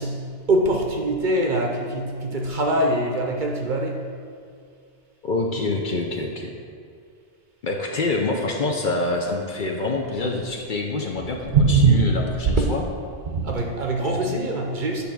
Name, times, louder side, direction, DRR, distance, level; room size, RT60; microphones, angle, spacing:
voice 1, 0.0-4.1 11.5-12.1 12.5-12.7 13.3-15.0, right 3 dB, 50° right, 1 dB, 0.7 m, -22 dB
voice 2, 5.2-6.5 7.6-12.8 14.0-14.4, left 3 dB, 55° left, 1 dB, 0.7 m, -26 dB
8.5 x 3.5 x 6.0 m, 2.2 s
omnidirectional pair, 1.2 m